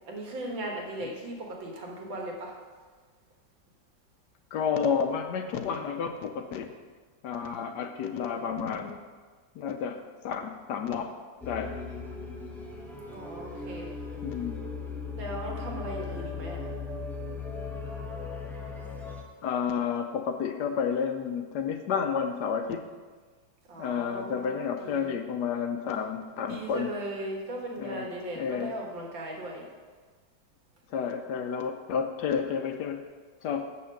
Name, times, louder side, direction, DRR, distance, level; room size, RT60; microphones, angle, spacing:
voice 1, 0.1-2.5 13.1-13.9 15.2-16.7 23.7-25.1 26.5-29.6, right 1 dB, 85° right, -1 dB, 2.3 m, -37 dB
voice 2, 4.5-6.7 7.2-9.0 9.5-11.2 11.4-11.8 14.2-14.7 19.4-22.9 23.8-26.9 27.8-28.8 30.9-33.0 33.4-33.7, left 7 dB, 70° left, 6 dB, 1.1 m, -31 dB
Soundscape Destiny, 11.4-19.2, left 4 dB, 5° left, 0.3 m, -38 dB
7.4 x 5.7 x 6.4 m, 1.5 s
omnidirectional pair, 2.0 m